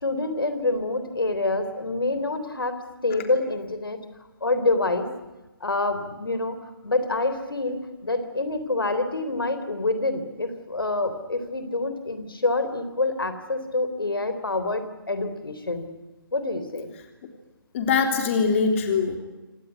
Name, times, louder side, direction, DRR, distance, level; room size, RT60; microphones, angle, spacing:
voice 1, 0.0-2.8 3.0-4.0 4.4-5.1 5.6-6.6 6.8-15.9 16.3-16.9, left 2 dB, 80° left, 10 dB, 3.7 m, -26 dB
voice 2, 17.7-19.2, left 5 dB, 35° left, 4 dB, 3.3 m, -22 dB
26.5 x 19.0 x 9.5 m, 1.1 s
figure-of-eight pair, 145°, 12 cm